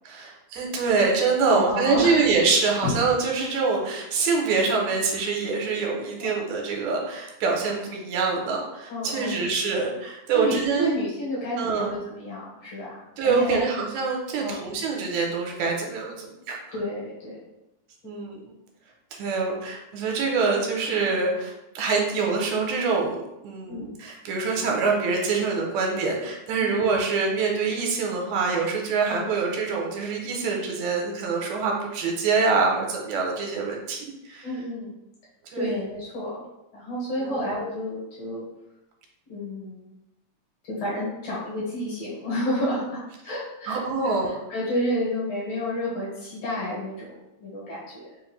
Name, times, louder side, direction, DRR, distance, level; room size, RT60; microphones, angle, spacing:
voice 1, 0.1-10.9 11.6-11.9 13.2-16.6 18.0-18.5 19.1-34.5 35.5-35.8 37.3-37.4 43.7-44.3, right 4 dB, 85° right, 0 dB, 2.1 m, -25 dB
voice 2, 1.4-2.2 2.8-2.9 6.2-6.4 8.9-9.4 10.3-13.0 13.2-13.6 14.4-14.7 16.7-17.4 18.0-18.2 23.7-23.9 26.6-26.8 34.4-35.0 35.5-36.4 36.7-38.5 39.3-39.9 40.6-48.1, left 1 dB, 60° left, -6 dB, 2.4 m, -30 dB
4.9 x 2.5 x 3.1 m, 0.91 s
omnidirectional pair, 3.4 m